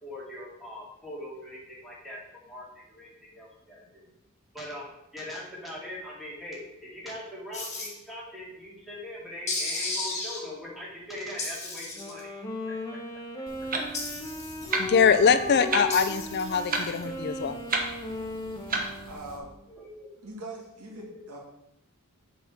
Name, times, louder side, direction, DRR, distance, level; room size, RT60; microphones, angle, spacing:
voice 1, 0.0-4.0 4.5-4.9 5.1-12.3 12.7-13.0 19.7-20.1 20.9-21.2, left 1 dB, ahead, -6 dB, 2.1 m, -41 dB
sound 1, 7.5-7.9 9.5-10.4 11.4-12.2 13.9-14.7 15.9-17.0, left 3 dB, 30° left, 1.9 m, -34 dB
Wind instrument woodwind instrument, 11.9-19.6, left 1 dB, 15° left, 0.9 m, -37 dB
Clock, 13.5-19.4, right 3 dB, 40° right, 1.0 m, -34 dB
voice 2, 14.8-17.6, left 6 dB, 50° left, 11 dB, 0.4 m, -23 dB
voice 3, 19.1-19.5 20.2-21.4, right 2 dB, 85° right, -1 dB, 1.8 m, -41 dB
7.3 x 4.2 x 5.8 m, 0.84 s
head